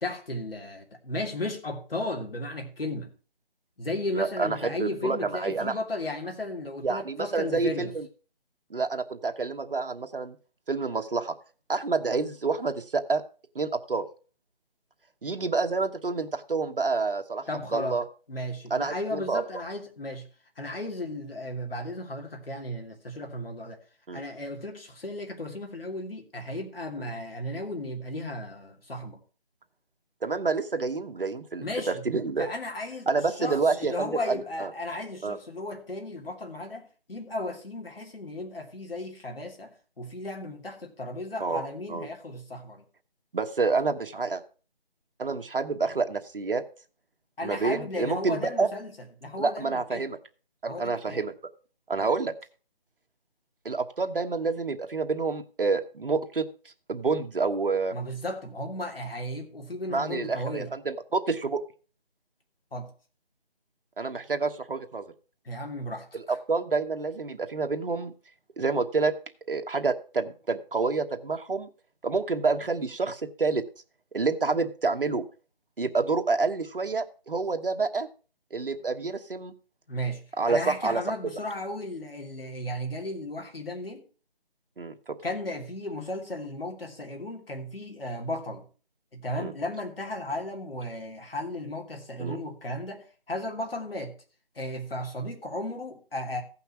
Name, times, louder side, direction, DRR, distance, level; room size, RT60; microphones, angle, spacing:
voice 1, 0.0-3.1 3.8-7.9 17.5-18.0 18.3-20.3 20.6-23.8 24.1-29.2 31.6-32.0 32.4-33.1 33.4-42.8 47.4-48.9 49.2-50.1 50.7-51.2 52.0-52.1 57.9-60.7 62.7-62.9 65.4-66.3 79.9-84.0 85.2-88.6 89.1-94.1 94.5-96.4, left 1 dB, 70° left, 3 dB, 3.1 m, -35 dB
voice 2, 4.1-5.8 6.8-8.1 8.7-10.4 10.7-11.3 11.7-13.2 13.5-14.0 15.2-17.4 17.7-18.0 18.7-19.4 24.1-24.2 30.2-32.5 33.1-34.7 35.2-35.4 41.4-42.1 43.3-44.4 45.2-46.6 47.4-48.7 49.4-50.2 50.6-51.3 51.9-52.3 53.6-56.5 56.9-57.9 59.9-61.6 64.0-65.0 66.1-68.1 68.6-69.1 69.5-71.7 72.0-73.6 74.1-75.2 75.8-78.1 78.5-79.5 80.4-81.0 84.8-85.2 89.4-89.5 92.2-92.4, right 4 dB, 65° right, 6 dB, 1.3 m, -28 dB
15.0 x 5.8 x 5.9 m, 0.38 s
figure-of-eight pair, 165°, 30 cm